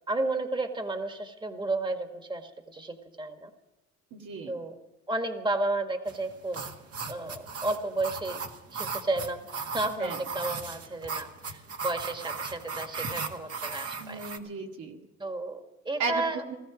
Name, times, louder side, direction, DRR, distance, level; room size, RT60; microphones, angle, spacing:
voice 1, 0.1-3.5 4.5-4.8 5.1-6.6 7.1-8.4 8.7-9.5 9.7-14.2 15.2-16.4, right 2 dB, 15° right, 6 dB, 1.7 m, -32 dB
voice 2, 4.1-4.6 10.0-10.2 14.0-15.0 16.0-16.6, right 4 dB, 75° right, 1 dB, 2.2 m, -35 dB
sound 1, 6.1-14.4, right 5 dB, 50° right, 1.8 m, -37 dB
17.5 x 14.5 x 5.1 m, 1.1 s
cardioid pair, 90°, 30 cm